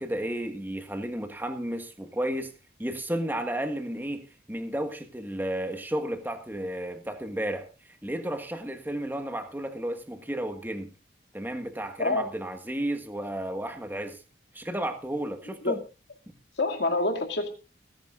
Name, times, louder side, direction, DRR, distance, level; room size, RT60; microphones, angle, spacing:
voice 1, 0.0-2.5 2.8-7.7 8.0-10.9 11.3-14.2 14.5-15.8, right 1 dB, 10° right, 1.6 m, -32 dB
voice 2, 12.0-12.3 15.6-15.8 16.6-17.5, left 2 dB, 70° left, 2.4 m, -27 dB
29.5 x 10.5 x 2.5 m
head